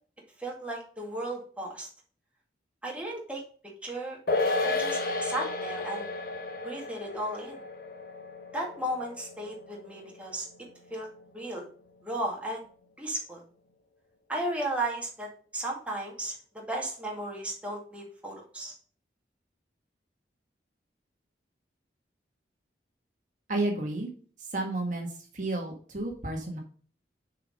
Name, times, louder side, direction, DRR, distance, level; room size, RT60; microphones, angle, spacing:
voice 1, 0.4-1.9 2.8-3.4 3.8-4.2 4.6-6.1 6.6-7.6 8.5-10.5 10.9-11.1 11.3-11.7 12.0-12.6 13.0-13.4 14.3-18.7, right 1 dB, 5° right, -2 dB, 2.0 m, -35 dB
sound 1, 4.3-10.9 11.2-11.3, left 3 dB, 55° left, 1.1 m, -33 dB
voice 2, 23.5-24.1 24.4-26.6, right 2 dB, 45° right, 1 dB, 1.6 m, -32 dB
6.7 x 4.8 x 5.1 m, 0.42 s
head